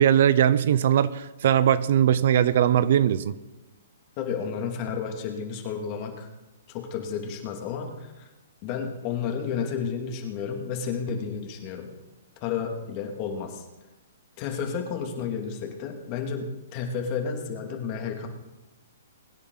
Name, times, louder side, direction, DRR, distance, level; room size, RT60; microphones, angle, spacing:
voice 1, 0.0-3.3, right 10 dB, 60° right, 16 dB, 0.6 m, -20 dB
voice 2, 4.2-6.3 6.7-8.2 8.6-11.9 12.4-13.6 14.4-18.3, left 6 dB, 35° left, 2 dB, 2.7 m, -31 dB
22.5 x 9.9 x 4.1 m, 1.1 s
hypercardioid pair, 135°, 0 cm